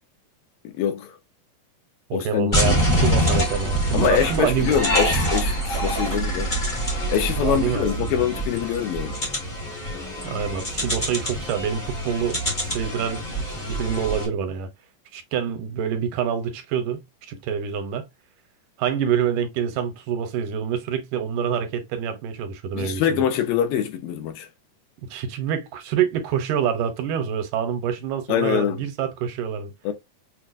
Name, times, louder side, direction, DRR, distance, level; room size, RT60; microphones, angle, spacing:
voice 1, 0.6-1.2 2.1-3.2 3.9-6.6 7.1-9.2 22.7-24.5 28.3-28.8 29.8-29.9, left 9 dB, 85° left, 2.6 m, -24 dB
voice 2, 2.1-4.8 7.3-8.2 10.2-12.4 12.7-14.7 15.1-18.1 18.8-23.2 25.0-29.7, right 8 dB, 75° right, 2.2 m, -26 dB
sound 1, 2.5-14.3, right 1 dB, 45° left, 0.6 m, -25 dB
6.2 x 2.3 x 2.5 m
omnidirectional pair, 4.0 m